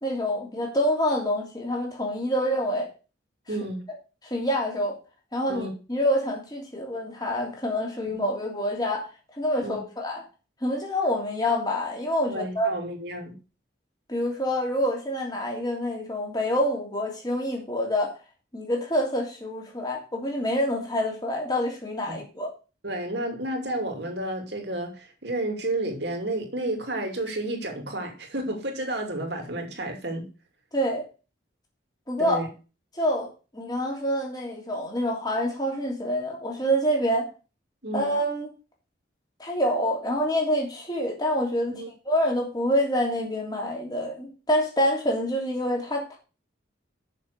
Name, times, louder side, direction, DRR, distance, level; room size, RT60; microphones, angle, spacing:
voice 1, 0.0-2.9 4.3-5.0 5.3-9.1 9.3-10.2 10.6-12.7 14.1-18.1 18.5-22.5 30.7-31.0 32.1-32.4 33.0-33.3 33.5-37.3 37.9-38.5 39.4-46.2, equal, 20° left, 3.0 m, -26 dB
voice 2, 3.5-3.8 5.5-5.7 8.1-8.2 9.6-9.8 12.3-13.3 22.1-22.2 22.8-30.3 32.2-32.4 37.8-38.1 41.7-41.9, right 1 dB, 60° right, 2.6 m, -31 dB
7.3 x 6.6 x 6.6 m
head